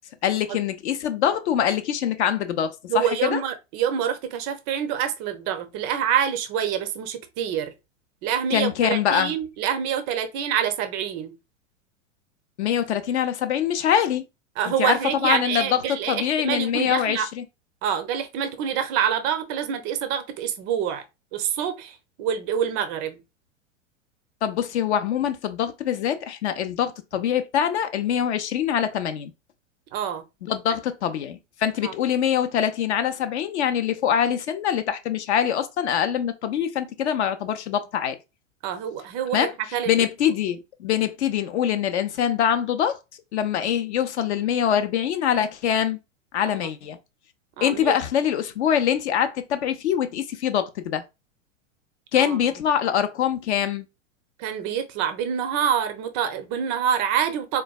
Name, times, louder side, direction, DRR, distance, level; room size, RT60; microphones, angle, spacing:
voice 1, 0.2-3.4 8.5-9.3 12.6-14.2 14.8-15.0 15.2-15.8 16.1-17.4 24.4-29.3 30.5-38.2 39.3-39.5 39.9-43.0 43.3-46.0 46.3-47.0 47.6-51.0 52.1-53.9, left 9 dB, 60° left, 0.5 m, -24 dB
voice 2, 2.9-7.7 8.2-11.3 14.6-17.3 17.8-21.1 21.3-23.2 29.9-30.2 31.8-31.9 38.6-40.4 46.5-46.6 47.6-48.0 52.1-52.4 54.4-57.6, right 8 dB, 25° right, 0.4 m, -26 dB
3.8 x 2.2 x 2.2 m
figure-of-eight pair, 95°, 39 cm